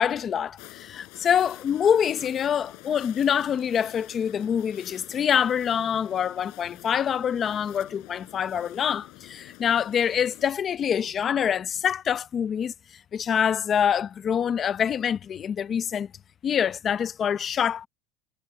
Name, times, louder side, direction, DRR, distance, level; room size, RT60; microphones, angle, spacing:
voice 1, 0.0-12.7 13.1-16.1 16.4-17.9, left 8 dB, 30° left, 0.9 m, -25 dB
sound 1, 0.6-10.4, left 26 dB, 60° left, 4.4 m, -48 dB
cardioid pair, 150°, 0 cm